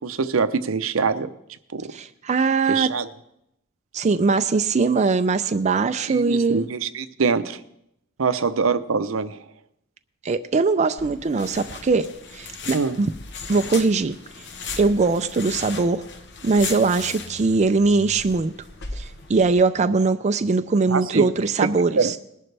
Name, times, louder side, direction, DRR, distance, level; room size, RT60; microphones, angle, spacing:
voice 1, 0.0-1.3 1.7-1.9 2.7-3.1 6.1-7.6 8.2-9.4 12.7-13.0 20.9-21.3 21.9-22.2, right 5 dB, 75° right, 12 dB, 0.7 m, -24 dB
voice 2, 1.9-2.9 3.9-6.6 10.2-12.1 12.3-13.1 13.5-14.2 14.8-16.0 16.4-18.5 18.9-22.2, right 4 dB, 35° right, 9 dB, 0.4 m, -21 dB
sound 1, 11.0-19.5, left 4 dB, 60° left, 1.1 m, -37 dB
20.5 x 11.0 x 3.4 m, 0.78 s
head